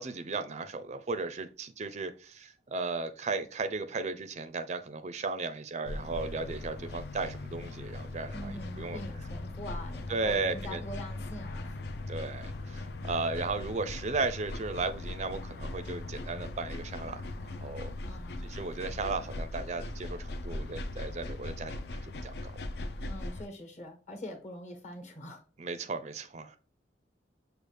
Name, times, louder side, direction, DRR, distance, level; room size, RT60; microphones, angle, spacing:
voice 1, 0.0-9.0 10.1-10.8 12.1-17.2 17.6-17.9 18.4-22.5 25.6-26.6, right 3 dB, 40° right, 0.4 m, -35 dB
sound 1, 5.8-23.5, left 2 dB, 65° left, 0.5 m, -39 dB
voice 2, 8.3-11.8 18.0-18.5 23.0-25.4, left 1 dB, 40° left, 1.2 m, -43 dB
6.3 x 2.4 x 3.3 m
head